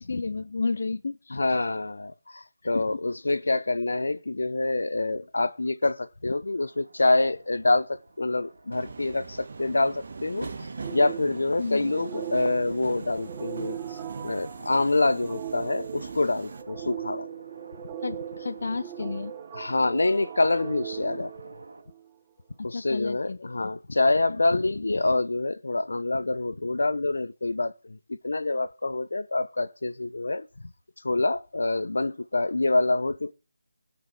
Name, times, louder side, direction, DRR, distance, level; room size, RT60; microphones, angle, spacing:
voice 1, 0.0-1.6 2.6-2.8 11.6-11.8 18.0-19.3 22.6-23.5, left 4 dB, 50° left, 0.5 m, -32 dB
voice 2, 1.3-17.3 19.5-21.6 22.6-30.5 31.0-33.3, left 2 dB, 75° left, 0.9 m, -26 dB
sound 1, 6.6-21.8, right 2 dB, 60° right, 3.3 m, -52 dB
Subway metro underground, 8.7-16.6, right 4 dB, 40° right, 1.5 m, -41 dB
sound 2, 10.8-22.1, right 11 dB, 10° right, 0.5 m, -39 dB
16.0 x 6.2 x 7.2 m
figure-of-eight pair, 170°, 0 cm